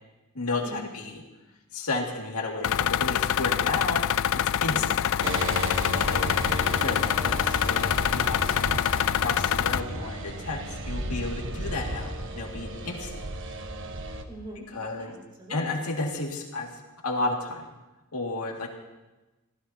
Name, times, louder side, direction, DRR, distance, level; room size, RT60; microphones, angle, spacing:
voice 1, 0.3-1.2 1.7-4.1 4.3-5.0 6.1-6.3 6.7-13.3 14.7-15.1 15.5-16.7 17.0-17.7 18.1-18.7, left 2 dB, 80° left, 1 dB, 2.2 m, -32 dB
sound 1, 2.6-9.8, left 9 dB, 60° left, 0.4 m, -25 dB
voice 2, 4.7-5.1 5.8-6.1 14.3-14.7 14.9-15.8, right 1 dB, 25° right, -3 dB, 5.1 m, -42 dB
sound 2, 5.2-14.2, right 1 dB, 60° right, 1.3 m, -34 dB
27.5 x 16.0 x 2.8 m, 1.1 s
head